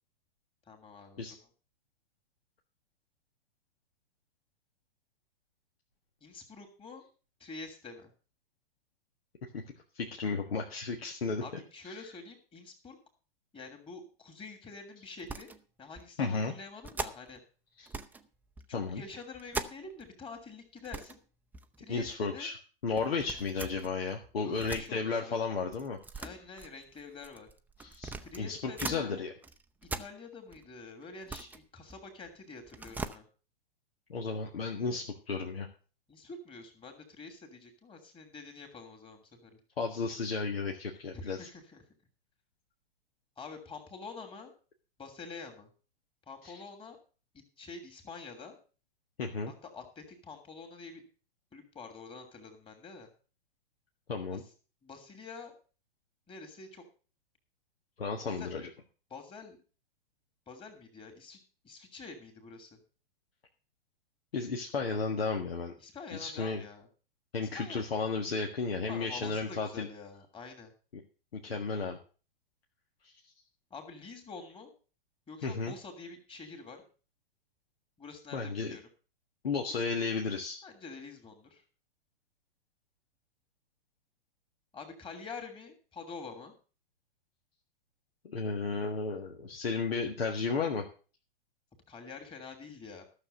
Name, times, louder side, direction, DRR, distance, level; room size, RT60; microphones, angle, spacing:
voice 1, 0.7-1.4 6.2-7.1 7.4-8.1 11.4-13.0 13.5-15.5 15.8-17.4 18.7-21.2 21.8-22.5 24.4-25.4 26.2-27.5 28.2-29.3 29.8-33.3 36.1-39.6 41.1-41.8 43.4-44.5 45.0-45.7 46.3-47.0 47.3-48.6 49.6-51.0 51.5-53.1 54.3-54.4 54.8-55.6 56.3-56.8 58.2-58.5 59.1-59.6 60.5-61.4 61.6-62.8 65.8-66.9 67.4-67.8 68.8-70.7 73.7-74.7 75.3-76.8 78.0-78.8 79.7-79.8 80.6-81.6 84.7-86.5 91.9-93.0, left 4 dB, 15° left, 4 dB, 2.8 m, -47 dB
voice 2, 9.9-11.4 11.9-12.0 16.2-16.5 17.8-17.9 18.7-19.0 21.9-22.6 22.8-26.3 27.8-29.3 34.1-35.7 39.8-41.5 46.4-46.6 49.2-49.5 54.1-54.4 58.0-58.7 64.3-65.7 66.1-66.6 67.3-69.9 71.3-72.0 73.0-73.1 75.4-75.7 78.3-78.8 79.4-80.6 88.2-90.9, left 4 dB, 75° left, 1 dB, 1.7 m, -33 dB
sound 1, 15.2-15.6 15.9-16.1 16.8-17.4 17.9-18.3 18.6-20.1 20.4-20.5 20.8-21.2 21.5-22.2 23.0-24.9 25.7-29.0 29.4-30.6 31.0-32.3 32.6-33.2, right 3 dB, 5° right, 0.6 m, -41 dB
12.5 x 6.8 x 6.6 m, 0.37 s
hypercardioid pair, 110°, 30 cm